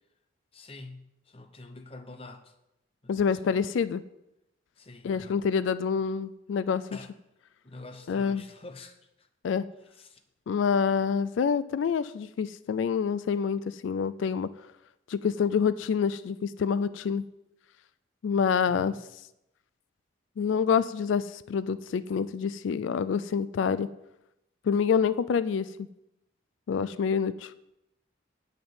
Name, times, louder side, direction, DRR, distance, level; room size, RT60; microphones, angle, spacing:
voice 1, 0.5-2.5 3.0-3.6 4.8-5.4 6.9-7.1 7.6-9.3 9.9-10.2 18.6-19.0, left 2 dB, 30° left, 8 dB, 0.8 m, -47 dB
voice 2, 3.1-4.0 5.0-7.0 8.1-8.4 9.4-9.7 10.5-14.5 15.1-17.2 18.2-18.9 20.4-23.9 24.6-25.7 26.7-27.5, left 6 dB, 80° left, 15 dB, 0.3 m, -27 dB
8.7 x 5.3 x 7.8 m, 0.87 s
head